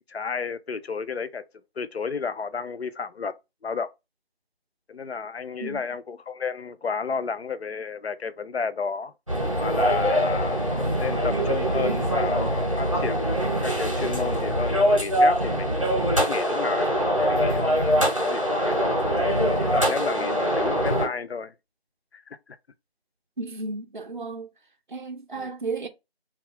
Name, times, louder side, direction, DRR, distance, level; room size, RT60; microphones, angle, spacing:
voice 1, 0.1-1.4 1.8-3.3 3.6-3.9 4.9-9.1 9.6-10.6 11.0-13.2 13.6-15.9 16.2-16.9 17.3-19.0 19.6-21.5 22.1-22.4 25.3-25.5, left 5 dB, 75° left, 0.5 m, -31 dB
sound 1, 9.3-21.1, equal, 30° right, 0.8 m, -23 dB
voice 2, 23.4-24.5 24.9-25.9, right 3 dB, 50° right, 0.4 m, -34 dB
2.3 x 2.1 x 3.5 m
figure-of-eight pair, 170°, 32 cm